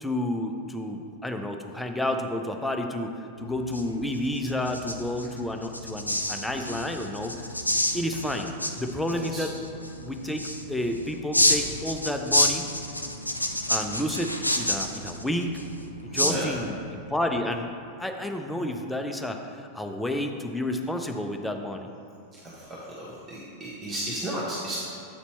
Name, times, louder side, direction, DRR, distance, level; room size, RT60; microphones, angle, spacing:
voice 1, 0.0-7.5 7.9-9.5 10.0-12.7 13.7-15.6 16.1-17.7 18.0-21.9, left 1 dB, 5° left, 4 dB, 0.5 m, -30 dB
sound 1, 3.4-17.0, left 1 dB, 85° left, 0.4 m, -29 dB
voice 2, 9.1-9.4 16.1-16.6 22.3-22.7 23.0-24.8, right 1 dB, 25° right, -7 dB, 1.1 m, -33 dB
8.1 x 4.2 x 4.4 m, 2.7 s
figure-of-eight pair, 90°, 0 cm